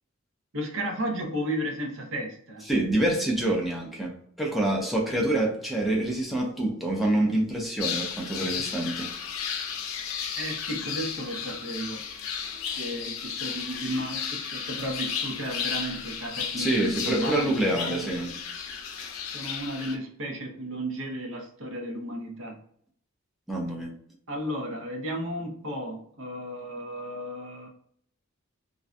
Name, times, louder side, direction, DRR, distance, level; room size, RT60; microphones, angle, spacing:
voice 1, 0.5-2.6 10.4-12.0 12.8-18.1 19.3-22.6 24.3-27.7, equal, 65° right, 2 dB, 0.6 m, -33 dB
voice 2, 2.7-9.1 16.6-18.4 23.5-23.9, right 1 dB, ahead, -3 dB, 0.4 m, -26 dB
sound 1, 7.8-20.0, left 7 dB, 75° left, 0.4 m, -34 dB
2.5 x 2.1 x 2.4 m, 0.63 s
head